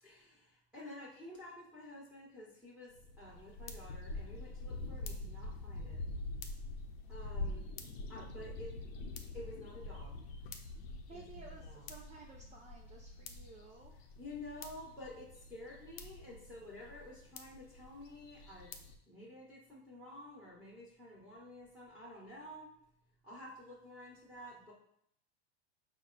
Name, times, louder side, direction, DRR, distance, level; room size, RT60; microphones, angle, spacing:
voice 1, 0.0-6.0 7.1-7.7 8.1-8.7 9.3-10.1 11.1-11.9 14.2-18.7 19.1-22.7 23.2-24.7, left 1 dB, 5° right, -7 dB, 1.2 m, -51 dB
sound 1, 2.9-19.0, left 2 dB, 65° left, 0.7 m, -45 dB
voice 2, 11.1-13.9, right 4 dB, 20° right, -1 dB, 0.4 m, -54 dB
4.6 x 2.2 x 3.9 m, 0.70 s
hypercardioid pair, 105°, 32 cm